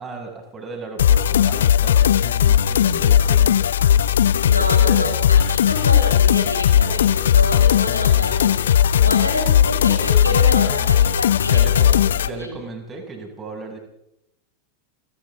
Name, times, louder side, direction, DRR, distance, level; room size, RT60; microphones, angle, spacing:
voice 1, 0.0-3.7 9.0-9.2 10.3-11.0 11.4-11.9 12.2-13.8, right 3 dB, 20° right, 2 dB, 6.0 m, -36 dB
sound 1, 1.0-12.3, left 9 dB, 65° left, 0.8 m, -17 dB
voice 2, 4.4-11.9 12.3-12.6, left 1 dB, 85° left, 1 dB, 5.7 m, -28 dB
29.5 x 24.0 x 3.6 m, 0.84 s
figure-of-eight pair, 90°, 0 cm